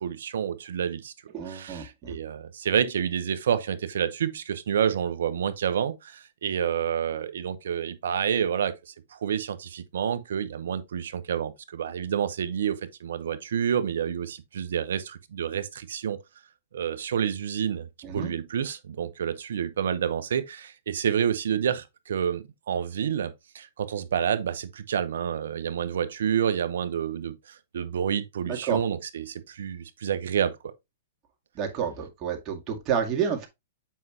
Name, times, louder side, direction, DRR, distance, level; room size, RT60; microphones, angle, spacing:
voice 1, 0.0-1.1 1.5-16.2 16.7-17.9 18.1-30.6, right 8 dB, 75° right, 1.0 m, -29 dB
voice 2, 1.3-2.2 18.0-18.3 28.5-28.8 31.6-33.5, right 7 dB, 35° right, 2.2 m, -29 dB
7.6 x 5.5 x 2.9 m
hypercardioid pair, 125°, 0 cm